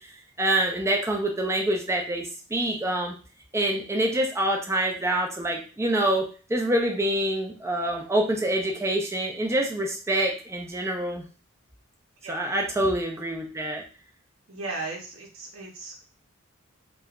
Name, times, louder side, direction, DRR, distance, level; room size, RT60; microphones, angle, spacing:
voice 1, 0.4-3.1 3.5-6.2 6.5-11.2 12.3-13.8, right 1 dB, 15° right, 1 dB, 0.4 m, -26 dB
voice 2, 14.5-16.0, right 3 dB, 75° right, -1 dB, 0.7 m, -36 dB
3.1 x 2.1 x 2.3 m, 0.37 s
head